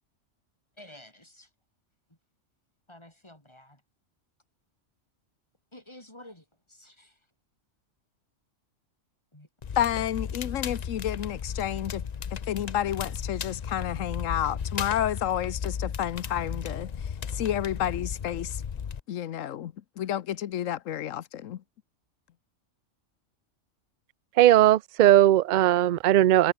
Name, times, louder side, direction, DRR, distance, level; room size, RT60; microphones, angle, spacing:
voice 1, 0.8-1.5 2.9-3.8 5.7-7.2 9.3-9.5, left 1 dB, 20° left, 4.6 m, -50 dB
Crackle, 9.6-19.0, left 7 dB, 40° left, 0.7 m, -35 dB
voice 2, 9.8-12.0 12.3-16.9 17.3-18.6 19.1-21.6, left 11 dB, 90° left, 1.2 m, -30 dB
voice 3, 24.4-26.5, right 13 dB, 60° right, 0.5 m, -18 dB
omnidirectional pair, 1.3 m